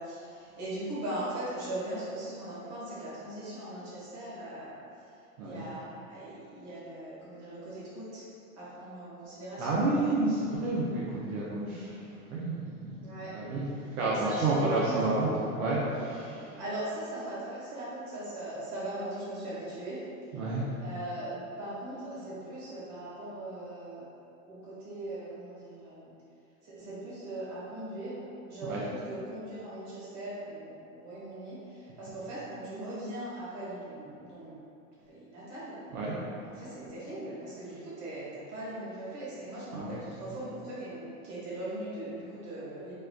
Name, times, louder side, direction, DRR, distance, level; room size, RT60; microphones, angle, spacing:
voice 1, 0.0-4.8 5.4-8.2 8.6-9.8 13.0-13.4 14.0-15.1 16.6-20.0 20.8-24.1 24.4-26.1 26.6-34.6 35.1-35.8 36.4-42.9, right 1 dB, 40° right, -9 dB, 1.4 m, -39 dB
voice 2, 9.6-13.7 13.9-16.6 20.3-20.8 28.6-28.8 35.9-36.2 39.7-39.9, right 2 dB, 80° right, -7 dB, 0.7 m, -30 dB
4.1 x 2.4 x 2.3 m, 2.6 s
hypercardioid pair, 120°, 43 cm